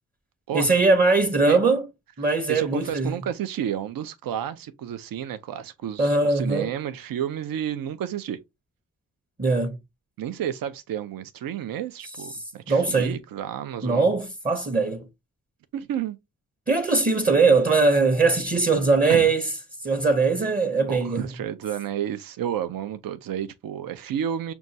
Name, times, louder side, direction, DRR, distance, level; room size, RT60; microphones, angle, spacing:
voice 1, 0.5-1.9 2.2-3.1 6.0-6.7 9.4-9.8 12.3-13.2 13.8-15.1 16.7-19.5 19.8-21.3, right 3 dB, 25° right, 0.6 m, -21 dB
voice 2, 2.2-8.4 10.2-14.1 15.7-16.2 19.1-19.3 20.9-24.5, right 10 dB, 90° right, 0.5 m, -31 dB
6.1 x 2.3 x 2.6 m
cardioid pair, 70°, 33 cm